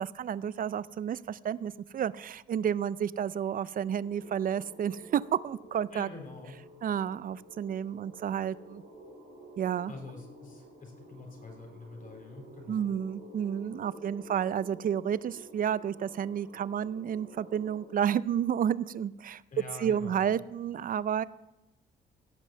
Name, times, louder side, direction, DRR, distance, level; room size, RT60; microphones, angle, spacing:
voice 1, 0.0-6.1 6.8-8.8 9.6-9.9 12.7-19.4 19.8-21.2, right 9 dB, 45° right, 19 dB, 0.4 m, -31 dB
sound 1, 4.0-17.9, right 1 dB, 80° right, 3.8 m, -51 dB
voice 2, 5.9-6.5 9.9-12.9 19.5-20.3, left 3 dB, 40° left, 2 dB, 3.7 m, -45 dB
16.0 x 5.4 x 7.5 m, 0.98 s
cardioid pair, 90°, 20 cm